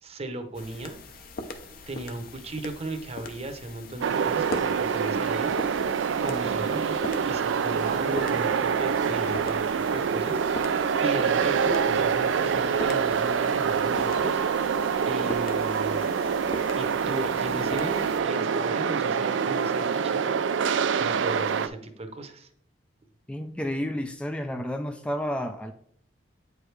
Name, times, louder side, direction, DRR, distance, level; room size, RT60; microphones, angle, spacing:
voice 1, 0.0-1.0 1.9-5.6 6.2-7.0 7.2-9.6 9.9-10.4 11.0-14.4 15.1-16.1 16.8-20.4 21.0-22.5, right 2 dB, 35° right, 7 dB, 0.8 m, -36 dB
sound 1, 0.5-18.2, left 2 dB, 55° left, 0.7 m, -41 dB
sound 2, 4.0-21.7, right 6 dB, 85° right, 0.4 m, -26 dB
voice 2, 23.3-25.7, equal, 5° left, 5 dB, 0.3 m, -31 dB
8.7 x 4.7 x 3.3 m, 0.68 s
head